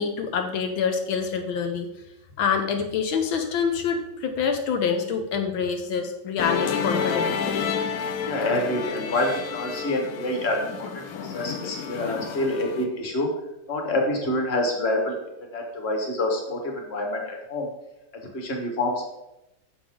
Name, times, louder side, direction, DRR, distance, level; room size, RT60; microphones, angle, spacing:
voice 1, 0.0-1.9 2.4-7.5, left 6 dB, 85° left, 5 dB, 1.7 m, -26 dB
Musical instrument, 6.4-12.9, left 6 dB, 60° left, 1.0 m, -30 dB
voice 2, 8.3-13.3 13.7-15.2 15.5-17.7 18.3-19.1, left 1 dB, 35° left, 1 dB, 1.8 m, -27 dB
9.9 x 7.1 x 3.7 m, 0.90 s
omnidirectional pair, 2.1 m